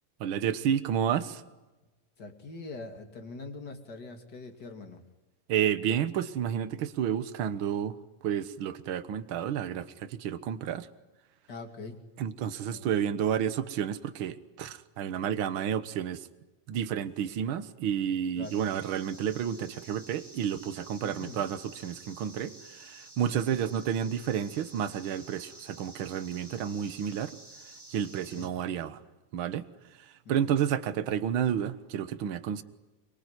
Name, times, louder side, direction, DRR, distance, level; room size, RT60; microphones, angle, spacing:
voice 1, 0.2-1.4 5.5-8.0 8.2-10.9 12.2-16.3 16.7-27.4 27.9-29.0 29.3-29.7 30.3-32.6, right 9 dB, 65° right, 12 dB, 1.3 m, -30 dB
voice 2, 2.2-5.0 11.5-12.0 12.7-12.9 18.3-18.7 21.0-21.5 23.2-23.6 28.2-28.5 30.2-30.6, left 3 dB, 30° left, 5 dB, 2.9 m, -43 dB
sound 1, 18.4-28.5, right 1 dB, 10° right, 1.8 m, -51 dB
25.5 x 23.5 x 9.7 m, 1.1 s
omnidirectional pair, 3.8 m